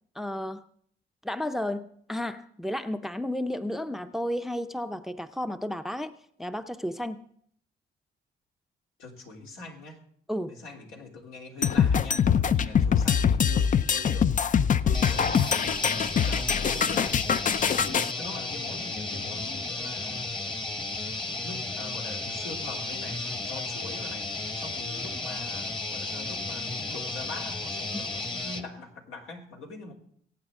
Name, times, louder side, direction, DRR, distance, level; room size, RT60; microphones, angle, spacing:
voice 1, 0.1-0.6 1.2-6.1 6.4-7.3 10.3-10.6 27.9-28.0, left 1 dB, ahead, 10 dB, 0.6 m, -32 dB
voice 2, 9.0-10.0 10.5-14.4 14.8-15.6 16.2-17.2 17.7-20.3 21.4-24.3 24.6-29.9, left 3 dB, 85° left, -1 dB, 3.2 m, -43 dB
sound 1, 11.6-18.1, left 7 dB, 40° left, 0.5 m, -23 dB
sound 2, 14.9-28.6, left 3 dB, 25° left, 1.3 m, -34 dB
22.5 x 8.7 x 3.7 m, 0.64 s
cardioid pair, 90°, 20 cm